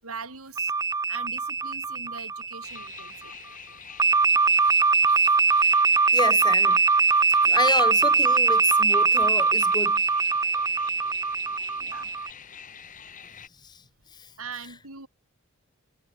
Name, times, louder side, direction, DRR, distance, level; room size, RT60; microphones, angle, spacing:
voice 1, 0.0-3.4 11.8-12.1 14.4-15.1, right 5 dB, 90° right, 6.6 m, -42 dB
sound 1, 0.6-3.1 4.0-12.3, right 4 dB, 15° right, 0.5 m, -22 dB
sound 2, 2.6-13.5, left 7 dB, 35° left, 2.3 m, -45 dB
voice 2, 6.1-6.8 7.4-10.0 13.6-13.8 14.1-14.3, left 3 dB, 20° left, 0.9 m, -30 dB
head